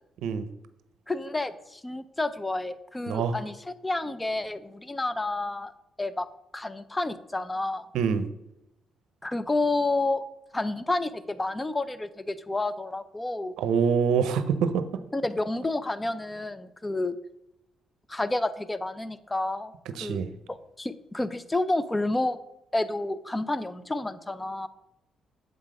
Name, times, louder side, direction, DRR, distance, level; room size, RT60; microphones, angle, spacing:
voice 1, 1.1-5.7 6.0-6.3 6.5-7.9 9.2-10.2 10.5-13.6 15.1-17.2 18.1-19.7 20.0-20.2 20.5-22.4 22.7-24.7, left 2 dB, 15° left, 14 dB, 0.5 m, -30 dB
voice 2, 3.1-3.4 7.9-8.3 13.6-14.8 20.0-20.3, right 6 dB, 85° right, 11 dB, 0.6 m, -25 dB
7.9 x 3.8 x 4.9 m, 0.86 s
cardioid pair, 90°, 0 cm